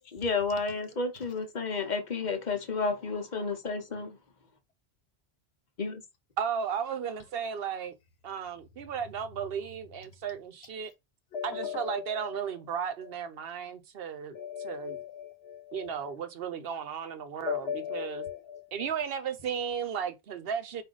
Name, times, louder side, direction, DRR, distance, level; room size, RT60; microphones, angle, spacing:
voice 1, 0.1-4.2 5.8-6.0, left 4 dB, 45° left, 0.9 m, -31 dB
voice 2, 6.4-8.0 8.2-10.9 11.4-15.0 15.7-18.2 18.7-20.8, right 7 dB, 65° right, 0.8 m, -35 dB
voice 3, 11.3-12.3 14.3-16.2 17.4-18.9, left 8 dB, 75° left, 1.1 m, -37 dB
4.8 x 2.6 x 3.8 m
omnidirectional pair, 1.1 m